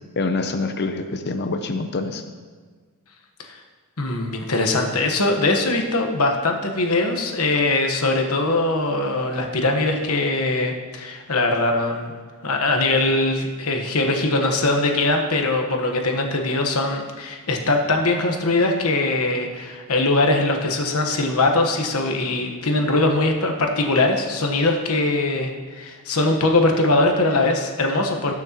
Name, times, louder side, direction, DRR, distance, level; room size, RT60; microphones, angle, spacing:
voice 1, 0.2-2.2, left 3 dB, 50° left, 7 dB, 0.6 m, -25 dB
voice 2, 4.0-12.1 12.4-28.3, left 2 dB, 70° left, 3 dB, 1.2 m, -21 dB
19.0 x 6.4 x 3.0 m, 1.5 s
head